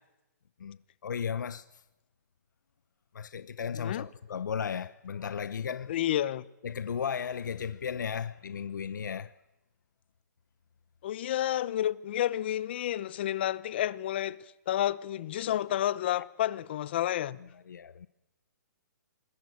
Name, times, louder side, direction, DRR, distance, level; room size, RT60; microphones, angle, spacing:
voice 1, 0.6-1.7 3.1-5.9 6.6-9.3 16.1-16.2 17.4-18.1, left 7 dB, 80° left, 0.9 m, -35 dB
voice 2, 5.9-6.4 11.0-14.4 14.7-17.4, left 12 dB, 35° left, 0.8 m, -30 dB
24.0 x 21.0 x 9.5 m
hypercardioid pair, 170°, 10 cm